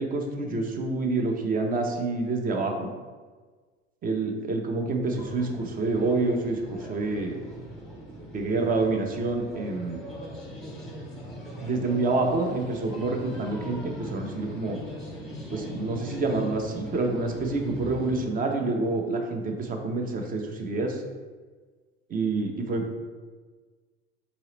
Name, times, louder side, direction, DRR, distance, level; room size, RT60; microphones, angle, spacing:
voice 1, 0.0-2.9 4.0-7.4 8.3-10.0 11.6-14.8 15.5-21.0 22.1-22.9, right 3 dB, 25° right, 3 dB, 0.5 m, -27 dB
sound 1, 5.0-18.2, equal, ahead, 1.1 m, -40 dB
3.9 x 2.8 x 3.1 m, 1.4 s
figure-of-eight pair, 75°, 34 cm